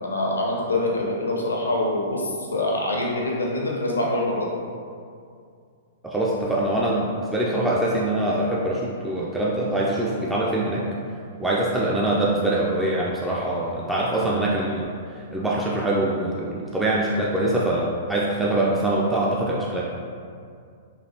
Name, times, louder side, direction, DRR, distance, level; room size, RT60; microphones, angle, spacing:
voice 1, 0.0-4.5, left 1 dB, 75° left, -2 dB, 0.6 m, -25 dB
voice 2, 6.0-10.9 11.4-14.9 15.1-19.8, right 1 dB, 5° right, -5 dB, 0.3 m, -24 dB
3.2 x 2.4 x 2.6 m, 2.3 s
figure-of-eight pair, 105°, 0 cm